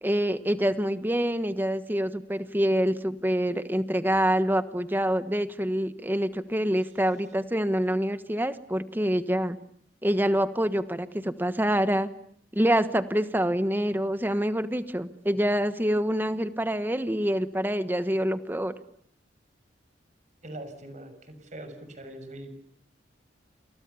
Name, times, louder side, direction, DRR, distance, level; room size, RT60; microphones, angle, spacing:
voice 1, 0.0-9.6 10.0-12.1 12.5-18.7, equal, 10° right, 12 dB, 1.3 m, -26 dB
voice 2, 20.4-22.6, right 1 dB, 40° right, 9 dB, 6.8 m, -42 dB
29.0 x 28.5 x 7.1 m, 0.67 s
head